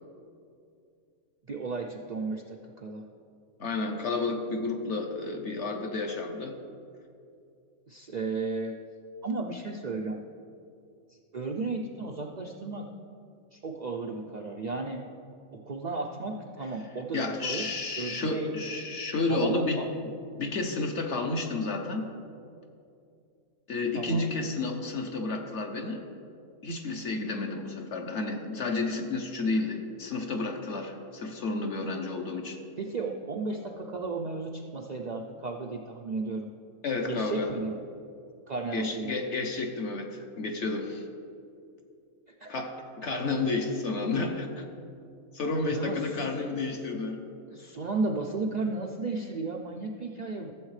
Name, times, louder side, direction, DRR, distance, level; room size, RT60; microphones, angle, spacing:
voice 1, 1.5-3.0 7.9-8.7 9.2-10.2 11.3-12.8 13.5-15.0 15.7-17.6 18.0-18.5 19.3-19.9 23.9-24.3 32.8-36.5 37.1-37.7 38.5-39.1 42.4-42.5 45.7-46.2 47.5-50.5, right 3 dB, 85° right, 1 dB, 0.3 m, -34 dB
voice 2, 3.6-6.6 17.1-19.8 20.4-22.0 23.7-26.1 26.6-32.6 36.8-37.5 38.7-41.0 42.5-44.6 45.3-47.2, left 3 dB, 60° left, 2 dB, 1.0 m, -31 dB
15.0 x 7.2 x 3.2 m, 2.5 s
omnidirectional pair, 1.5 m